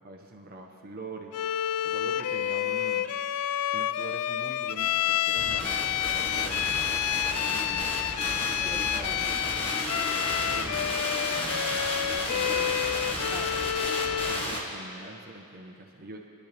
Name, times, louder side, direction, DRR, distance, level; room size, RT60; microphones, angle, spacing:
voice 1, 0.0-1.4 1.8-3.1 3.7-6.8 7.5-9.2 10.2-11.0 12.4-12.7 14.3-16.3, right 2 dB, 40° right, 2 dB, 1.0 m, -44 dB
Bowed string instrument, 1.3-14.5, left 11 dB, 80° left, 0.4 m, -29 dB
sound 1, 5.4-14.6, left 1 dB, 25° left, 1.5 m, -32 dB
voice 2, 7.4-9.5 11.3-13.7, equal, ahead, -3 dB, 1.0 m, -47 dB
22.5 x 10.5 x 3.4 m, 2.6 s
head